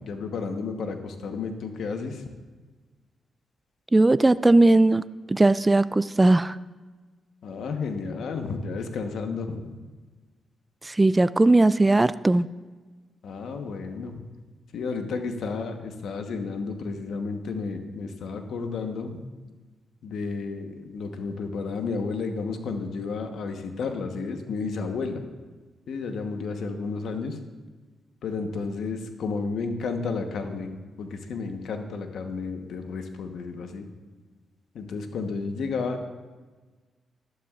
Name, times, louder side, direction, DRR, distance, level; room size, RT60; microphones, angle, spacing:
voice 1, 0.0-2.2 7.4-9.7 13.2-14.2 14.7-19.2 20.0-25.2 25.9-27.4 28.2-30.7 31.0-33.9 34.7-36.1, left 4 dB, 75° left, 6 dB, 1.1 m, -32 dB
voice 2, 3.9-5.0 5.3-6.6 10.9-12.5, right 2 dB, 20° right, 15 dB, 0.3 m, -18 dB
13.0 x 12.0 x 2.5 m, 1.3 s
cardioid pair, 65°, 0 cm